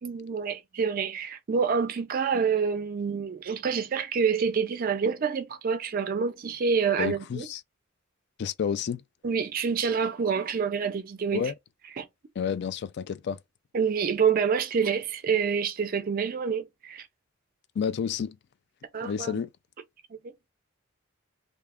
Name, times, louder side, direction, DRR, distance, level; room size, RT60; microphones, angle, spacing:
voice 1, 0.0-7.5 9.2-11.5 12.0-12.1 13.7-17.1 18.9-19.4 20.1-20.3, right 6 dB, 45° right, 0.4 m, -27 dB
voice 2, 7.0-7.6 8.4-9.0 11.3-11.5 12.4-13.4 17.8-18.4 19.0-19.5, left 7 dB, 55° left, 0.3 m, -30 dB
2.7 x 2.3 x 3.4 m
head